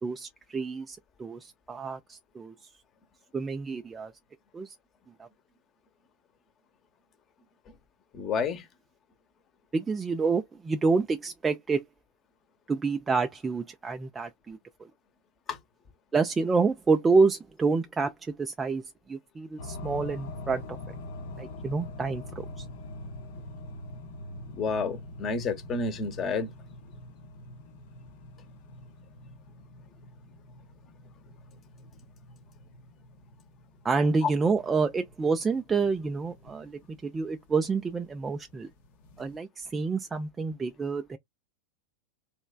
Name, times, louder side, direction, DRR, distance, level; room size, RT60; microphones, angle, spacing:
voice 1, 0.0-2.5 3.3-4.1 4.5-4.7 5.2-5.3 9.7-11.8 12.7-14.6 16.1-18.8 19.1-20.6 21.4-22.7 33.8-38.7 39.2-41.2, right 4 dB, 15° right, 0.4 m, -28 dB
voice 2, 8.1-8.7 15.5-15.6 24.5-26.5 34.2-34.3, left 5 dB, 30° left, 1.0 m, -29 dB
sound 1, 19.6-39.4, left 2 dB, 55° left, 0.7 m, -45 dB
3.2 x 3.0 x 2.3 m
figure-of-eight pair, 90°, 0 cm